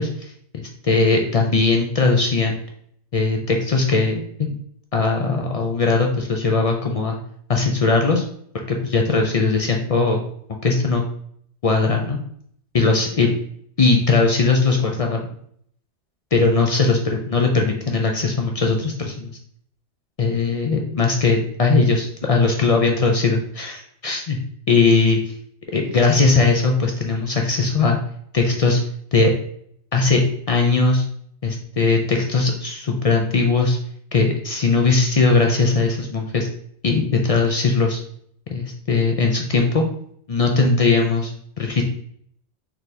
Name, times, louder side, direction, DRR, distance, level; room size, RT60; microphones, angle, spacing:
voice 1, 0.0-2.6 3.1-4.5 4.9-7.2 7.5-8.2 8.7-10.2 10.6-11.0 11.6-12.2 12.7-13.4 13.8-15.2 16.3-19.3 20.2-24.4 24.7-25.3 25.7-28.0 28.3-28.8 29.1-29.3 29.9-31.0 31.4-33.8 34.1-36.5 36.8-38.0 38.5-39.8 40.3-41.3 41.6-41.8, left 3 dB, 60° left, 1 dB, 0.3 m, -19 dB
4.0 x 2.9 x 3.2 m, 0.66 s
omnidirectional pair, 1.2 m